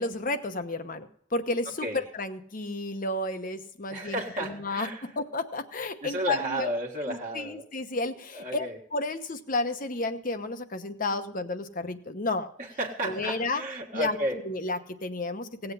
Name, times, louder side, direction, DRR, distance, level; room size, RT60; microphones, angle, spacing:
voice 1, 0.0-6.7 7.1-8.7 8.9-12.5 13.0-13.6 13.9-14.2 14.4-15.7, left 2 dB, 45° left, 9 dB, 1.0 m, -32 dB
voice 2, 3.9-5.1 6.0-7.6 8.3-8.8 12.6-14.4, right 1 dB, 40° right, -1 dB, 1.5 m, -33 dB
17.5 x 8.0 x 5.5 m, 0.66 s
head